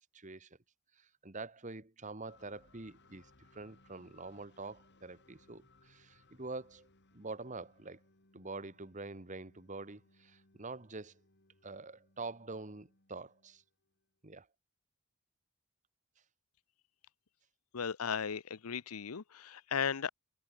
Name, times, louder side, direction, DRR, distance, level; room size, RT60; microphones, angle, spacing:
voice 1, 0.1-0.5 1.0-6.9 7.1-8.0 8.3-11.2 11.6-13.6 14.2-14.5, right 3 dB, 35° right, 1.5 m, -46 dB
sound 1, 2.3-14.0, left 2 dB, 50° left, 3.6 m, -67 dB
voice 2, 17.7-20.1, left 7 dB, 85° left, 0.7 m, -36 dB
head